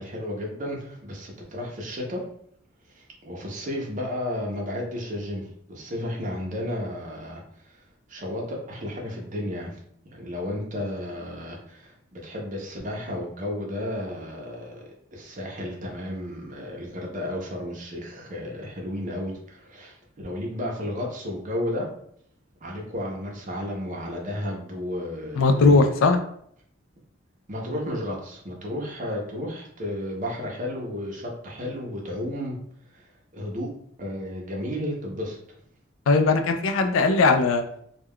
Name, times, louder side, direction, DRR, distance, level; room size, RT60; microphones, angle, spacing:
voice 1, 0.0-2.3 2.9-7.8 8.1-9.8 10.0-21.9 22.6-25.7 27.5-32.6 32.9-33.7 34.0-35.4, left 1 dB, 40° right, -1 dB, 0.6 m, -33 dB
voice 2, 25.4-26.2 36.1-37.7, left 3 dB, 85° left, 6 dB, 0.4 m, -19 dB
2.2 x 2.2 x 3.5 m, 0.67 s
head